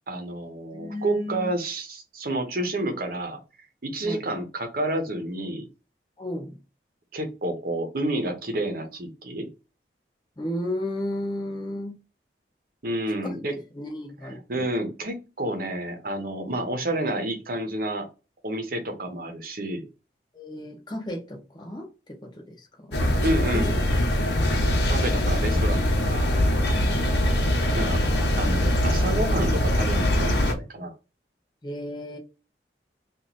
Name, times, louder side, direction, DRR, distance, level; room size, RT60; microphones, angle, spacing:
voice 1, 0.1-3.4 3.8-5.7 7.1-9.5 12.8-13.6 14.5-18.1 18.4-19.9 23.2-23.7 24.9-26.3 27.7-28.0 28.4-30.9, right 1 dB, 55° right, 0.9 m, -29 dB
voice 2, 0.7-1.5 4.0-4.3 6.2-6.6 10.4-12.0 13.2-13.3 13.7-14.7 20.3-23.0 23.5-23.7 26.0-26.1 26.7-27.1 31.6-32.2, left 1 dB, 25° left, 0.9 m, -34 dB
sound 1, 22.9-30.5, left 1 dB, 80° left, 1.0 m, -22 dB
3.0 x 2.5 x 3.9 m
head